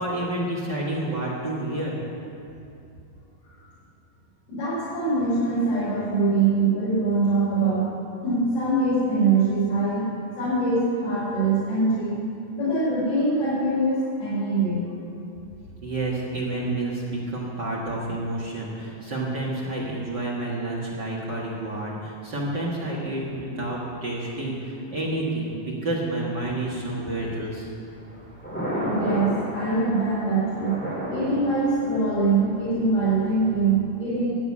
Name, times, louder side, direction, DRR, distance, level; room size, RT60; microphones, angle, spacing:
voice 1, 0.0-2.0 15.8-27.7, right 2 dB, 45° right, -5 dB, 1.5 m, -29 dB
voice 2, 4.5-7.9 8.2-10.1 10.4-12.2 12.6-14.9 28.8-30.8 31.1-34.3, right 3 dB, 90° left, -11 dB, 6.0 m, -23 dB
Thunder, 27.7-33.7, equal, 5° left, 2.8 m, -34 dB
11.5 x 8.0 x 9.6 m, 2.6 s
omnidirectional pair, 4.3 m